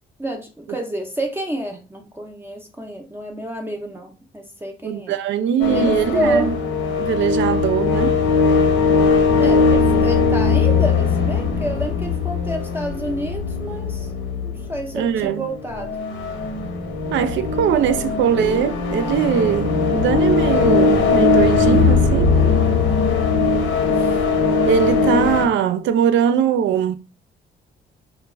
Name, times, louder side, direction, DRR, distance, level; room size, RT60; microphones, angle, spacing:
voice 1, 0.2-5.1 5.7-6.5 9.4-14.1 14.4-16.0 23.9-24.2, equal, 10° right, 0.5 m, -29 dB
voice 2, 4.8-6.5 7.0-8.2 14.9-15.5 17.1-22.4 24.7-26.9, right 8 dB, 70° right, 0.4 m, -21 dB
sound 1, 5.6-25.5, left 4 dB, 85° left, 0.9 m, -19 dB
2.2 x 2.2 x 3.1 m
cardioid pair, 90°, 20 cm